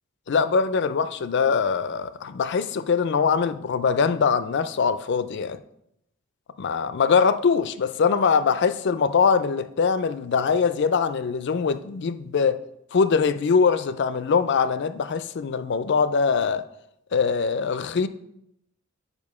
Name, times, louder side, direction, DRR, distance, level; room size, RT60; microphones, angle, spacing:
voice 1, 0.3-5.6 6.6-12.6 12.9-16.6 17.1-18.1, left 5 dB, 55° left, 13 dB, 0.4 m, -22 dB
7.4 x 5.0 x 4.8 m, 0.79 s
head